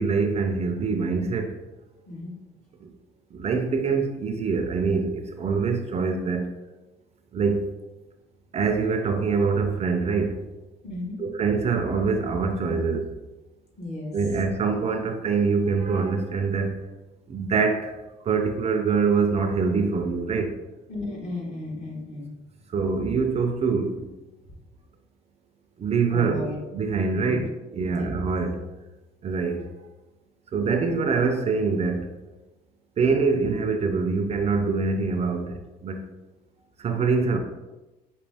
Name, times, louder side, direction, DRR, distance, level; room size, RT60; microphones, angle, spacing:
voice 1, 0.0-1.5 2.8-2.9 3.3-6.5 7.3-7.7 8.5-10.5 11.2-13.1 14.1-16.8 17.3-18.0 18.2-20.5 22.7-24.1 25.8-28.6 29.2-29.7 30.5-32.1 33.0-36.0 36.8-37.4, right 4 dB, 40° right, 0.5 m, -24 dB
voice 2, 10.8-11.2 13.8-14.1 20.9-22.3 26.1-26.6 27.1-27.5 27.8-28.1, left 2 dB, 45° left, 1.4 m, -34 dB
5.1 x 2.7 x 3.4 m
cardioid pair, 110°, 17 cm